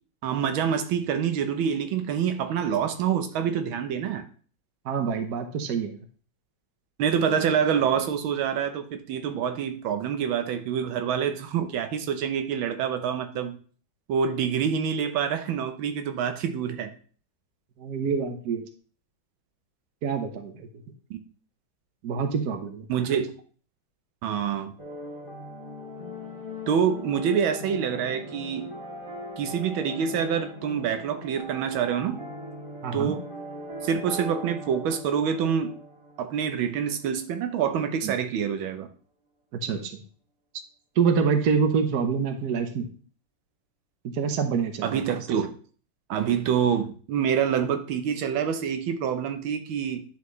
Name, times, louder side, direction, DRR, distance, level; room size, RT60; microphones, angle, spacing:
voice 1, 0.2-4.3 7.0-13.6 14.1-16.9 21.1-21.2 22.9-23.3 24.2-24.7 26.7-28.7 29.4-32.2 32.9-33.2 33.8-35.7 36.2-38.9 44.8-45.5 46.1-50.0, right 7 dB, 90° right, 7 dB, 1.6 m, -26 dB
voice 2, 4.8-6.0 17.8-18.6 20.0-20.7 22.0-22.8 32.8-33.1 38.0-38.2 39.6-40.0 41.0-42.9 44.0-44.9, right 6 dB, 60° right, 6 dB, 1.3 m, -26 dB
sound 1, 24.8-37.6, left 1 dB, 15° right, 1.4 m, -40 dB
10.5 x 4.4 x 3.1 m, 0.42 s
omnidirectional pair, 2.1 m